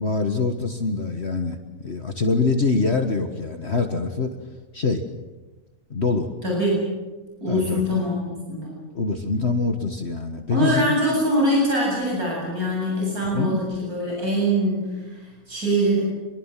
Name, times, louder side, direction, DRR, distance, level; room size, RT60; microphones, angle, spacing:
voice 1, 0.0-4.4 4.7-5.0 5.9-6.3 7.5-8.1 8.9-11.0 13.3-13.6, left 4 dB, 45° left, 5 dB, 1.8 m, -24 dB
voice 2, 6.4-6.8 7.4-8.1 8.5-8.8 10.5-16.0, equal, 90° right, -3 dB, 8.5 m, -23 dB
27.5 x 23.0 x 7.6 m, 1.2 s
omnidirectional pair, 1.5 m